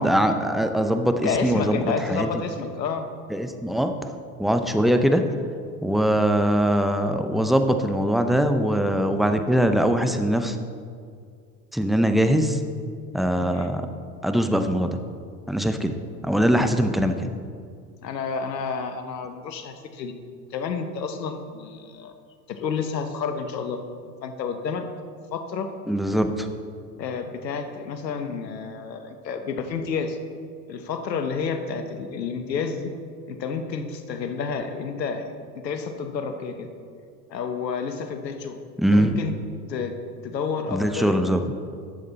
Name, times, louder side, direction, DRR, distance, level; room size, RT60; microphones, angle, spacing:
voice 1, 0.0-1.8 2.1-2.3 3.3-4.1 4.4-5.2 5.8-10.6 11.7-12.6 13.1-13.8 14.2-15.0 15.5-15.9 16.2-17.3 25.9-26.5 38.8-39.2 40.7-41.4, equal, ahead, 7 dB, 0.5 m, -22 dB
voice 2, 1.2-3.1 13.5-13.7 18.0-20.1 20.5-22.1 22.6-23.8 24.2-24.8 25.3-25.7 27.0-30.2 30.7-32.9 33.3-35.3 35.6-36.7 37.3-38.6 38.9-39.3 39.7-39.9 40.2-41.3, left 5 dB, 90° left, 7 dB, 1.0 m, -30 dB
11.0 x 7.3 x 4.0 m, 2.2 s
hypercardioid pair, 80°, 49 cm